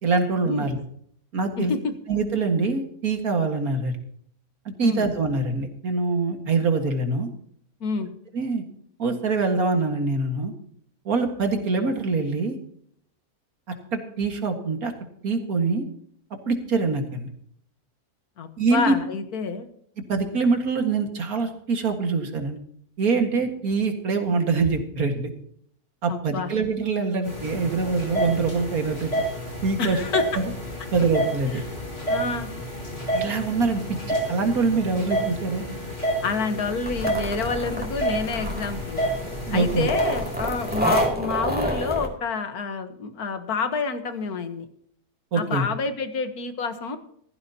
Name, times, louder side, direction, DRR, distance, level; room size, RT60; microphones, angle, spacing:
voice 1, 0.0-0.8 1.3-1.7 2.1-3.9 4.7-7.3 8.3-8.6 9.0-10.5 11.1-12.6 13.9-14.9 15.2-15.8 16.5-17.3 18.6-19.0 20.1-22.6 23.0-25.3 26.0-29.1 29.6-30.0 30.9-31.6 33.1-34.0 34.3-35.7 39.5-39.9 45.3-45.7, right 4 dB, 75° right, 5 dB, 2.3 m, -24 dB
voice 2, 18.4-19.7 26.1-26.5 29.8-30.3 31.5-31.6 32.1-32.5 36.2-39.1 39.5-44.7 45.3-47.0, left 5 dB, 80° left, 9 dB, 1.8 m, -28 dB
sound 1, 27.2-41.0, right 1 dB, 50° left, 5.5 m, -30 dB
sound 2, 36.9-42.1, equal, 5° right, 2.6 m, -29 dB
16.0 x 14.5 x 2.9 m, 0.66 s
omnidirectional pair, 1.6 m